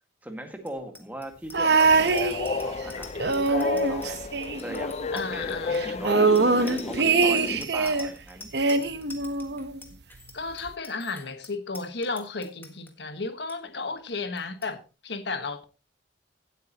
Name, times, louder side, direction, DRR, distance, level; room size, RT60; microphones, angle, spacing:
voice 1, 0.2-4.2 4.6-6.3 6.6-8.5, right 1 dB, 10° right, 1.8 m, -39 dB
Bicycle bell, 0.6-12.9 13.3-13.6 13.8-14.1 14.4-14.7, left 3 dB, 10° left, 1.6 m, -46 dB
sound 1, 1.5-2.8 3.2-5.1 5.3-5.4 5.7-8.1 8.5-9.8 10.7-10.8, right 4 dB, 60° right, 1.0 m, -23 dB
Train, 1.8-7.6, left 3 dB, 35° left, 0.4 m, -32 dB
voice 2, 5.1-6.0 10.3-15.6, left 3 dB, 65° left, 1.4 m, -33 dB
17.0 x 8.2 x 3.0 m
head